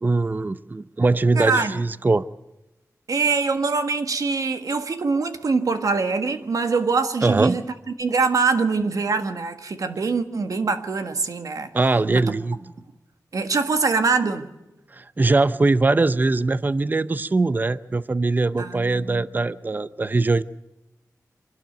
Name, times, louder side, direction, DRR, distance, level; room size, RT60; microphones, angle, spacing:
voice 1, 0.0-2.3 7.2-7.6 11.7-12.6 14.9-20.4, right 3 dB, 30° right, 0.6 m, -21 dB
voice 2, 1.3-1.8 3.1-7.7 8.0-11.7 12.1-12.2 13.3-14.5 18.6-19.3, right 4 dB, 65° right, 1.6 m, -23 dB
26.0 x 12.0 x 9.2 m
wide cardioid pair, 85°, 6 cm